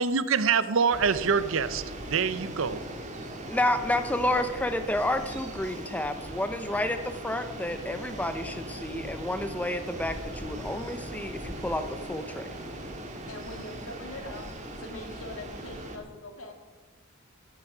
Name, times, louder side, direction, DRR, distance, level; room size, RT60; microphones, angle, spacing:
voice 1, 0.0-2.8, right 5 dB, 65° right, 14 dB, 0.7 m, -25 dB
sound 1, 0.9-16.0, right 1 dB, 35° right, 1.8 m, -39 dB
voice 2, 3.4-12.5, left 1 dB, 5° left, 8 dB, 0.6 m, -30 dB
voice 3, 13.0-16.5, left 1 dB, 70° left, 3 dB, 2.2 m, -43 dB
16.5 x 8.2 x 5.0 m, 1.3 s
head